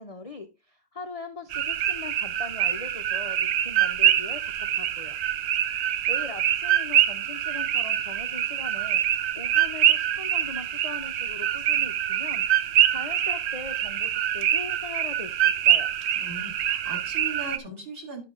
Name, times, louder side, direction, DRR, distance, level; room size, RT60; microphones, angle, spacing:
voice 1, 0.0-5.2 6.1-15.9, left 4 dB, 45° left, 0.4 m, -41 dB
sound 1, 1.5-17.6, right 11 dB, 65° right, 0.7 m, -25 dB
voice 2, 16.2-18.2, right 2 dB, 40° right, 2.4 m, -38 dB
11.0 x 5.7 x 3.6 m
omnidirectional pair, 1.7 m